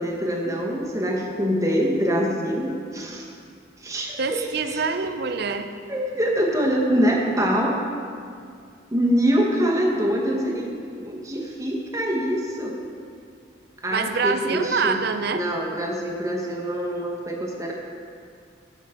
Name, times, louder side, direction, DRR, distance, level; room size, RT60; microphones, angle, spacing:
voice 1, 0.0-3.2 3.8-4.8 5.9-7.8 8.9-10.7 11.0-12.8 13.8-15.0 15.3-17.7, equal, 15° right, -1 dB, 1.0 m, -24 dB
voice 2, 4.2-5.7 13.9-15.5, right 5 dB, 55° right, 8 dB, 0.5 m, -25 dB
14.0 x 5.6 x 4.3 m, 2.3 s
head